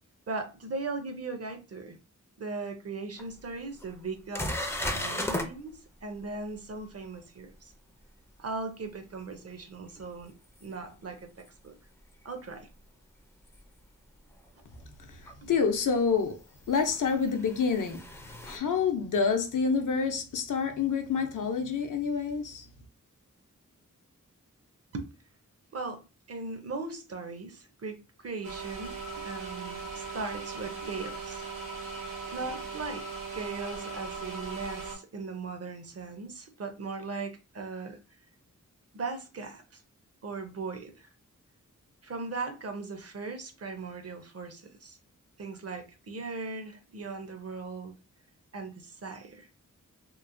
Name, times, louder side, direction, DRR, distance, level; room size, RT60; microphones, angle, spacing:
voice 1, 0.3-2.0 2.4-7.7 8.4-10.3 10.6-11.7 12.2-12.7 15.4-15.5 24.9-25.1 25.7-31.5 32.3-33.1 33.3-38.0 38.9-39.8 40.2-41.1 42.0-45.0 45.4-47.9 48.5-49.5, right 3 dB, 50° right, 0.6 m, -38 dB
sound 1, 3.2-3.3 3.8-3.9 4.3-5.5 10.6-10.7 13.5-13.6 15.3-15.4 16.7-18.6, left 1 dB, 10° left, 0.3 m, -34 dB
voice 2, 15.5-16.4 16.7-18.0 18.4-22.7, left 5 dB, 75° left, 0.6 m, -27 dB
sound 2, 28.4-34.9, right 4 dB, 80° right, 1.2 m, -39 dB
3.0 x 2.0 x 2.5 m
wide cardioid pair, 75°, 32 cm